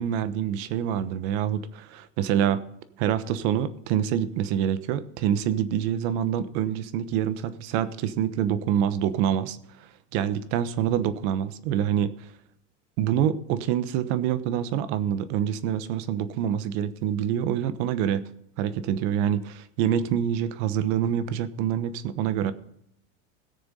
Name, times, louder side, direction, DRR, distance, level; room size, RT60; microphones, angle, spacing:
voice 1, 0.0-2.6 3.0-9.9 10.1-12.3 13.0-18.3 18.6-22.5, right 10 dB, 60° right, 14 dB, 1.1 m, -26 dB
17.0 x 6.8 x 5.4 m, 0.76 s
supercardioid pair, 140°, 39 cm